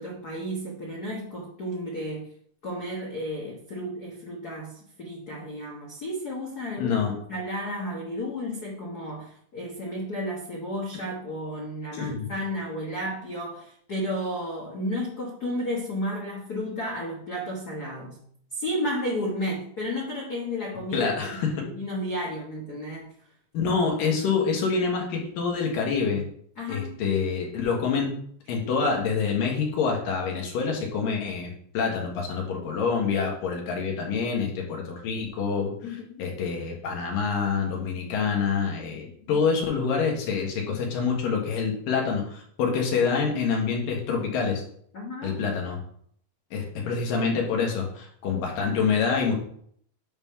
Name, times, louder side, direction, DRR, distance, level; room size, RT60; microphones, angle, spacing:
voice 1, 0.0-2.3 2.6-7.0 7.3-18.2 18.5-21.1 21.6-23.1 26.6-27.0 35.8-36.3 39.3-39.4 44.9-45.4, equal, 65° left, -3 dB, 0.9 m, -32 dB
voice 2, 6.8-7.1 12.0-12.3 20.9-21.7 23.5-26.2 26.7-28.1 28.5-35.7 36.2-44.6 45.2-45.8 46.5-49.3, left 5 dB, 90° left, 0 dB, 3.1 m, -26 dB
7.9 x 3.7 x 5.7 m, 0.63 s
omnidirectional pair, 3.8 m